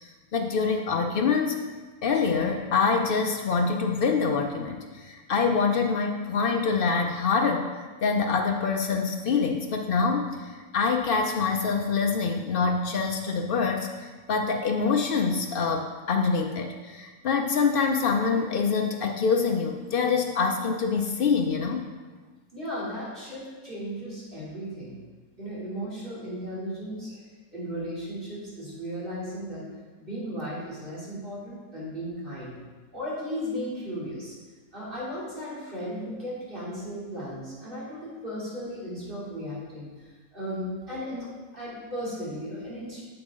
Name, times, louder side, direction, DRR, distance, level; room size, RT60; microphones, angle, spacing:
voice 1, 0.3-1.6 2.0-7.7 8.0-21.9, left 5 dB, 80° left, 3 dB, 0.4 m, -25 dB
voice 2, 22.5-25.0 25.4-27.2 27.5-29.6 30.0-32.6 32.9-34.3 34.7-39.9 40.3-41.3 41.6-43.0, equal, 35° right, -8 dB, 3.1 m, -35 dB
8.7 x 7.3 x 3.7 m, 1.4 s
omnidirectional pair, 1.7 m